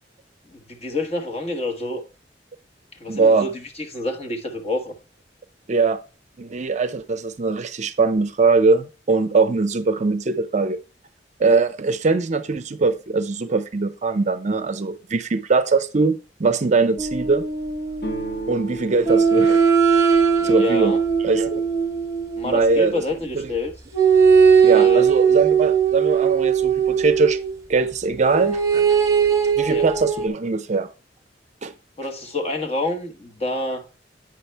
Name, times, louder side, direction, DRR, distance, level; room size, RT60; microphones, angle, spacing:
voice 1, 0.4-2.0 3.0-3.5 3.8-4.9 20.4-21.0 22.4-23.7 24.7-25.0 29.6-29.9 32.0-33.8, left 2 dB, 35° left, 1.2 m, -27 dB
voice 2, 3.1-3.5 5.7-6.0 6.4-10.8 11.4-17.5 18.5-20.1 20.4-20.9 21.2-21.6 22.4-23.0 23.3-23.5 24.6-27.4 27.7-28.9 29.6-30.9 31.6-31.7, right 4 dB, 40° right, 0.5 m, -21 dB
sound 1, 17.0-18.4 19.0-22.9 23.9-27.6 28.3-30.3, right 6 dB, 20° right, 1.0 m, -19 dB
sound 2, 18.0-21.6, right 3 dB, 60° left, 1.8 m, -35 dB
8.8 x 5.7 x 3.3 m
head